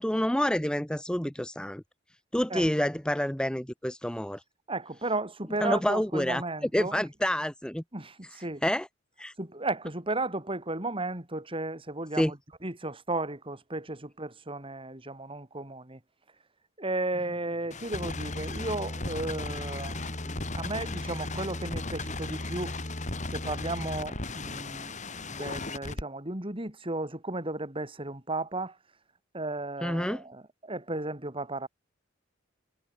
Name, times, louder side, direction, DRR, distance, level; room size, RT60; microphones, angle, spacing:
voice 1, 0.0-1.8 2.3-4.4 5.6-6.4 6.7-7.8 8.6-8.9 9.2-9.3 12.1-12.3 20.2-20.4 29.8-30.2, left 1 dB, 5° left, 0.7 m, -28 dB
voice 2, 2.5-2.9 4.7-7.1 7.9-8.6 9.4-16.0 16.8-20.3 20.5-22.8 23.3-28.8 29.3-31.7, right 2 dB, 30° right, 3.5 m, -34 dB
sound 1, 17.7-26.0, left 2 dB, 40° left, 3.0 m, -35 dB
head